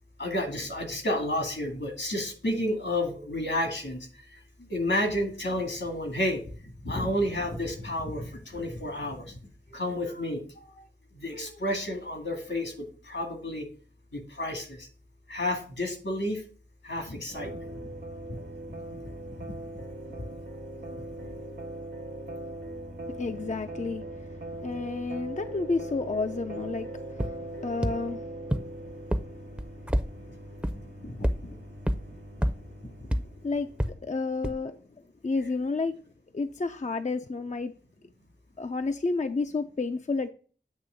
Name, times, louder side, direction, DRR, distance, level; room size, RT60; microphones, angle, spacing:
voice 1, 0.2-4.1 4.6-6.4 6.8-9.4 9.7-10.4 10.7-10.9 11.1-13.7 14.1-14.9 15.3-16.4 16.8-17.9 18.3-18.4 18.9-19.0 20.8-21.3 31.0-31.6 33.0-33.1, left 1 dB, 80° left, 2.1 m, -31 dB
sound 1, 17.3-34.0, right 1 dB, 65° right, 1.2 m, -41 dB
voice 2, 23.1-30.3 32.8-32.9 33.4-34.8 35.2-36.0 36.3-37.7 38.6-40.3, left 3 dB, 40° left, 0.5 m, -32 dB
sound 2, 27.2-27.3 27.8-27.9 28.5-28.6 29.1-29.2 29.6-30.0 30.6-30.7 31.2-31.3 31.9-32.0 32.4-32.5 33.1-33.2 33.8-33.9 34.4-34.5, equal, 5° right, 0.6 m, -24 dB
8.2 x 3.0 x 6.3 m
wide cardioid pair, 50°, 19 cm